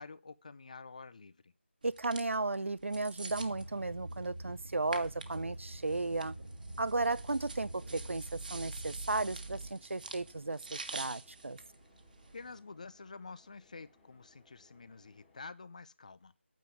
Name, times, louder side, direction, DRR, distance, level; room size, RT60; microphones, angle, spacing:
voice 1, 0.0-1.5 12.3-16.3, left 4 dB, 35° left, 0.6 m, -49 dB
sound 1, 1.8-12.6, right 3 dB, 45° right, 1.4 m, -49 dB
voice 2, 1.8-6.3 6.8-11.6, right 3 dB, 85° right, 0.6 m, -35 dB
sound 2, 3.3-9.7, right 2 dB, 65° right, 2.1 m, -45 dB
sound 3, 4.9-15.4, left 3 dB, 10° left, 1.8 m, -67 dB
9.2 x 6.9 x 7.1 m
figure-of-eight pair, 170°, 7 cm